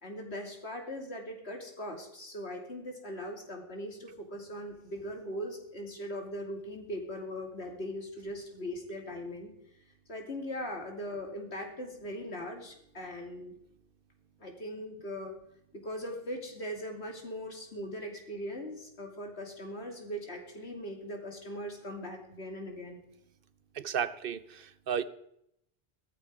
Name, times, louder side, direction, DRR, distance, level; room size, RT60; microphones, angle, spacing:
voice 1, 0.0-9.5 10.1-13.5 14.4-15.4 15.7-23.0, equal, 90° left, 2 dB, 3.0 m, -40 dB
voice 2, 23.7-25.0, right 8 dB, 60° right, 15 dB, 1.0 m, -33 dB
17.0 x 13.5 x 4.7 m, 0.76 s
omnidirectional pair, 1.1 m